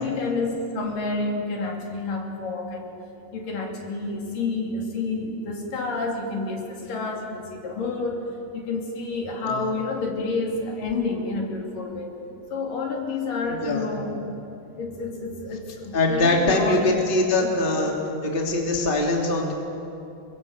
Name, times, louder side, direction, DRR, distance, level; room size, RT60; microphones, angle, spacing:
voice 1, 0.0-3.0 3.3-12.2 12.5-14.4 14.8-16.9 17.4-17.6, left 3 dB, 60° left, 0 dB, 4.5 m, -29 dB
voice 2, 13.5-13.8 15.9-17.9 18.2-19.5, left 2 dB, 15° left, -1 dB, 2.8 m, -22 dB
28.5 x 22.5 x 8.2 m, 2.7 s
omnidirectional pair, 4.4 m